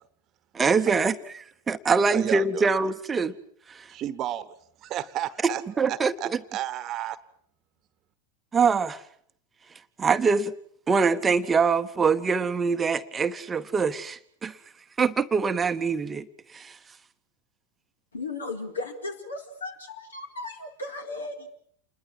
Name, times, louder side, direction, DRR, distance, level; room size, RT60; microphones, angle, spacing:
voice 1, 0.5-3.3 3.7-3.9 5.8-6.1 8.5-9.0 10.0-10.5 10.9-14.6 15.0-16.3 16.5-16.8, right 5 dB, 15° right, 1.0 m, -24 dB
voice 2, 2.1-2.7 3.9-4.5 4.8-5.6 5.9-7.2, right 12 dB, 35° right, 1.2 m, -32 dB
voice 3, 18.1-21.5, left 2 dB, 70° left, 4.3 m, -36 dB
28.5 x 21.5 x 7.6 m
figure-of-eight pair, 90°, 0 cm